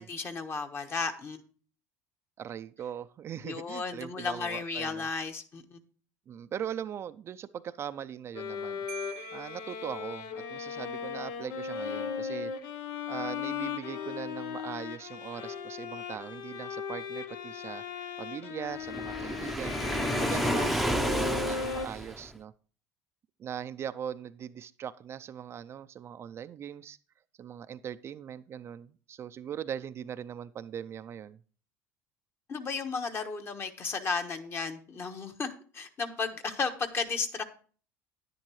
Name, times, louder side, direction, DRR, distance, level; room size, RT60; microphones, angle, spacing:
voice 1, 0.0-1.4 3.4-5.8 32.5-37.4, left 4 dB, 35° left, 6 dB, 1.3 m, -34 dB
voice 2, 2.4-5.1 6.3-8.8 9.3-12.5 13.1-19.8 20.1-22.5 23.4-27.0 27.4-31.4, right 9 dB, 40° right, 11 dB, 0.4 m, -40 dB
Bowed string instrument, 8.3-21.9, left 6 dB, 80° left, 0.9 m, -37 dB
Marimba xylophone, 8.9-10.6, right 13 dB, 85° right, 0.7 m, -48 dB
Waves surf, 18.9-22.4, right 1 dB, ahead, 0.7 m, -31 dB
10.5 x 9.9 x 3.1 m, 0.41 s
supercardioid pair, 105°, 7 cm